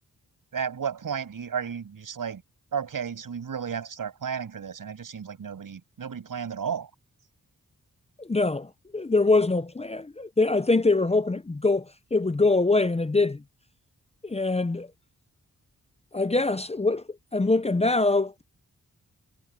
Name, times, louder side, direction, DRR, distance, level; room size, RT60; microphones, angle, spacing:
voice 1, 0.5-2.4 2.7-6.9, right 7 dB, 80° right, 7.2 m, -33 dB
voice 2, 8.2-13.4 14.2-14.9 16.1-17.0 17.3-18.4, left 3 dB, 20° left, 0.7 m, -24 dB
wide cardioid pair, 85°, 33 cm